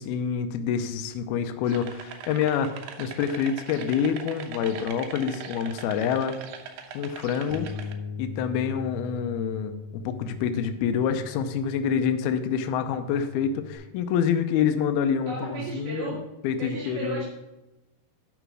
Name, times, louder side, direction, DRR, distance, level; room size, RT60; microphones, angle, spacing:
voice 1, 0.0-6.4 6.9-7.7 8.2-16.2 16.4-17.2, left 7 dB, 80° left, 8 dB, 2.6 m, -27 dB
sound 1, 1.6-7.9, right 7 dB, 85° right, 3.0 m, -41 dB
Bass guitar, 7.5-13.8, left 4 dB, 55° right, 2.7 m, -40 dB
voice 2, 15.3-16.2 16.6-17.3, right 3 dB, 70° right, -6 dB, 3.7 m, -34 dB
11.5 x 5.1 x 6.2 m, 1.0 s
omnidirectional pair, 4.6 m